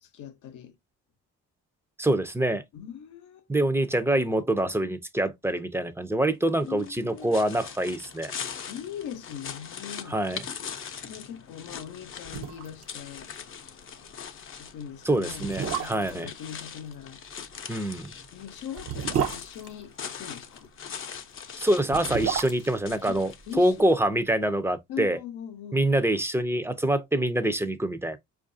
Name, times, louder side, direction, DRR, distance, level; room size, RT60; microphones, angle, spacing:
voice 1, 0.0-0.8 2.7-3.5 6.6-7.3 8.6-10.2 11.0-13.3 14.6-17.2 18.3-20.7 23.1-23.2 23.5-24.0 24.9-25.9, left 9 dB, 85° left, 0.7 m, -41 dB
voice 2, 2.0-2.6 3.5-8.3 10.1-10.4 15.1-16.3 17.7-18.1 21.6-25.2 25.7-28.2, right 1 dB, 10° right, 0.4 m, -25 dB
sound 1, 6.7-23.9, left 7 dB, 45° left, 0.5 m, -41 dB
sound 2, 11.9-12.0 12.2-12.9 13.2-13.3 13.7-13.9 14.6-14.7 15.3-16.2 17.8-20.4 21.7-23.9 24.2-24.3, right 8 dB, 55° right, 0.6 m, -32 dB
4.5 x 2.4 x 2.5 m
cardioid pair, 90°, 30 cm